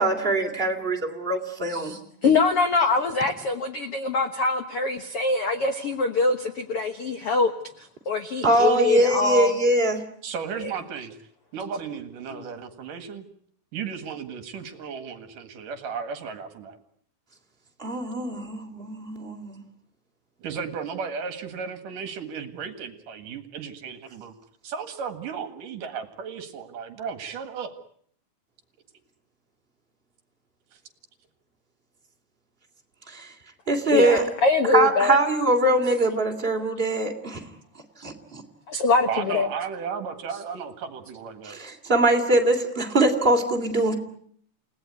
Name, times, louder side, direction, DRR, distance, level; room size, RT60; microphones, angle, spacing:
voice 1, 0.0-1.9 8.4-10.0 17.8-19.6 33.1-33.3 33.7-34.2 34.7-37.4 38.0-38.4 41.4-43.9, right 2 dB, 15° right, 3 dB, 2.4 m, -22 dB
voice 2, 1.7-7.5 7.8-9.5 12.3-12.4 33.9-35.2 38.7-39.5, left 4 dB, 80° left, 8 dB, 1.3 m, -24 dB
voice 3, 10.2-11.2 11.5-13.2 13.7-16.8 20.4-24.3 24.6-27.8 39.1-41.6, right 6 dB, 60° right, 9 dB, 3.0 m, -34 dB
29.5 x 18.0 x 9.5 m, 0.65 s
omnidirectional pair, 4.8 m